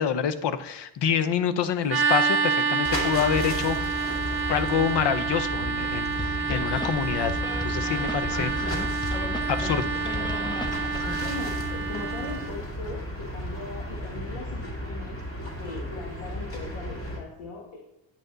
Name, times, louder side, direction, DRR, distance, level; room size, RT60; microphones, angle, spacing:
voice 1, 0.0-3.9 4.5-8.5 9.5-9.9, left 7 dB, 65° left, 12 dB, 0.8 m, -27 dB
sound 1, 1.9-12.5, right 5 dB, 25° right, 1.7 m, -28 dB
sound 2, 2.8-17.2, equal, 30° left, 2.4 m, -34 dB
sound 3, 6.2-11.2, left 1 dB, 10° left, 0.5 m, -34 dB
voice 2, 11.1-15.3 15.6-17.8, left 3 dB, 85° left, 0 dB, 1.7 m, -39 dB
8.9 x 7.9 x 4.0 m, 0.86 s
cardioid pair, 125°, 45 cm